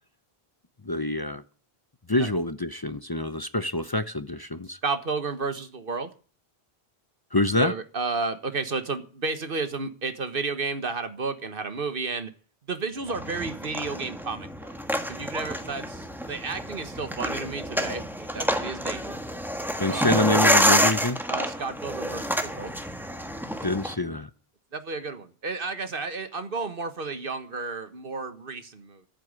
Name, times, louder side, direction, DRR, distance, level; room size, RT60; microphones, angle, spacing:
voice 1, 0.8-1.4 2.1-4.8 7.3-7.7 19.8-21.2 23.6-24.3, left 2 dB, 25° left, 0.7 m, -26 dB
voice 2, 4.8-6.1 7.6-12.3 12.7-14.7 15.1-19.2 19.9-20.3 21.3-22.7 24.7-29.1, right 4 dB, 60° right, 1.6 m, -32 dB
sound 1, 13.1-23.9, equal, ahead, 1.5 m, -28 dB
14.0 x 7.8 x 9.7 m
omnidirectional pair, 1.1 m